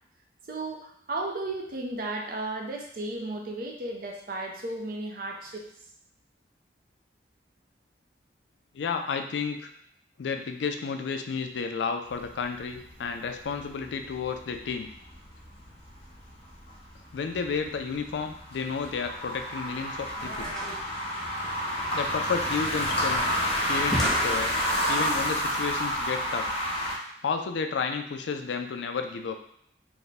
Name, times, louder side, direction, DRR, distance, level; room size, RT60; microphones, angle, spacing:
voice 1, 0.5-5.6, right 2 dB, 50° right, 1 dB, 0.5 m, -34 dB
voice 2, 8.7-9.7 10.2-14.9 17.1-20.5 21.9-23.2 23.7-24.5 24.9-26.5 27.2-29.4, left 5 dB, 75° left, 6 dB, 0.4 m, -31 dB
sound 1, 12.1-26.9, equal, 35° left, 0.8 m, -30 dB
sound 2, 20.2-25.0, equal, ahead, 0.4 m, -37 dB
3.4 x 2.1 x 4.0 m, 0.71 s
head